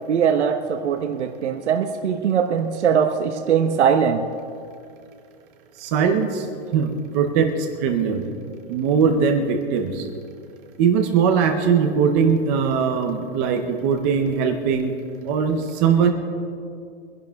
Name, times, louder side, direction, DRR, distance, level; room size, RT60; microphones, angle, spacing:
voice 1, 0.1-4.3, right 7 dB, 85° right, 5 dB, 1.0 m, -21 dB
voice 2, 5.8-6.5 6.7-8.2 8.7-10.1 10.8-14.9 15.2-16.1, right 6 dB, 15° right, 4 dB, 0.5 m, -20 dB
24.0 x 11.0 x 3.4 m, 2.3 s
hypercardioid pair, 170°, 33 cm